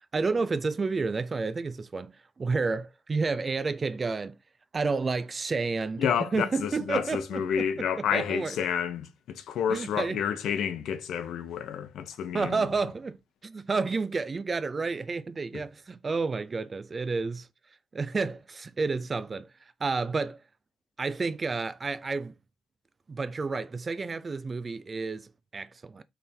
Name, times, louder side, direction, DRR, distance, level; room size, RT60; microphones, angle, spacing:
voice 1, 0.1-2.1 2.4-4.4 4.7-8.5 9.7-10.2 12.3-13.2 13.4-17.5 17.9-19.5 19.8-20.4 21.0-22.3 23.1-26.0, right 4 dB, 30° right, 0.4 m, -30 dB
voice 2, 6.0-12.7 15.5-15.6, left 8 dB, 75° left, 0.7 m, -30 dB
3.4 x 3.3 x 4.3 m
cardioid pair, 90°, 0 cm